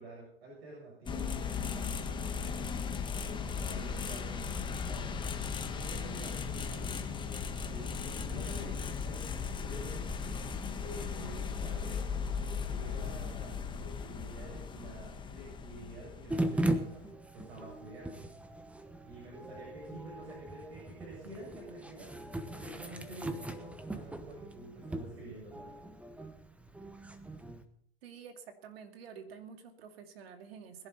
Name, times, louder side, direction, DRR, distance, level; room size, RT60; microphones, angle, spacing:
voice 1, 0.0-2.6 3.2-9.2 9.5-10.2 10.7-12.1 12.4-17.0 17.3-18.2 19.0-22.1 22.6-25.7, right 1 dB, 85° right, -4 dB, 7.8 m, -49 dB
sound 1, 1.1-17.1, left 6 dB, 15° left, 1.2 m, -37 dB
sound 2, 16.3-27.6, right 1 dB, 5° right, 1.0 m, -39 dB
voice 2, 28.0-30.9, right 7 dB, 70° right, 6 dB, 2.5 m, -49 dB
21.0 x 11.5 x 4.1 m, 0.68 s
hypercardioid pair, 125°, 31 cm